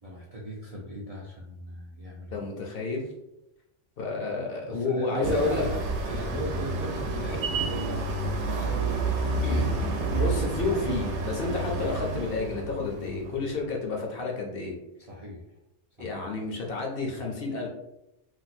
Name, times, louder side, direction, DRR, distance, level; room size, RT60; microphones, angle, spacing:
voice 1, 0.0-2.4 4.7-5.8 6.0-9.6 15.0-15.4 16.0-16.2, right 1 dB, 50° right, -4 dB, 0.4 m, -37 dB
voice 2, 2.3-3.1 4.0-5.7 9.4-14.7 16.0-17.7, left 3 dB, 60° left, 0 dB, 0.8 m, -30 dB
sound 1, 5.2-13.5, right 3 dB, 75° right, 0.9 m, -29 dB
2.7 x 2.1 x 4.0 m, 0.88 s
omnidirectional pair, 1.2 m